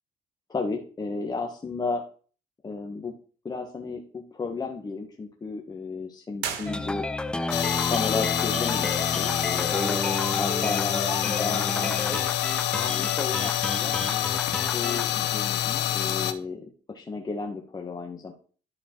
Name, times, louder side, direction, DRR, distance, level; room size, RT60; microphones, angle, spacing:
voice 1, 0.5-2.0 2.6-3.1 3.4-7.0 7.9-12.2 12.8-13.9 14.6-18.3, left 4 dB, 25° left, 1 dB, 1.3 m, -33 dB
sound 1, 6.4-7.4, right 8 dB, 85° right, 1.6 m, -36 dB
sound 2, 6.7-15.1, left 1 dB, 5° left, 0.4 m, -31 dB
sound 3, 7.5-16.3, left 12 dB, 90° left, 0.8 m, -27 dB
11.5 x 4.3 x 4.4 m, 0.41 s
cardioid pair, 110°, 17 cm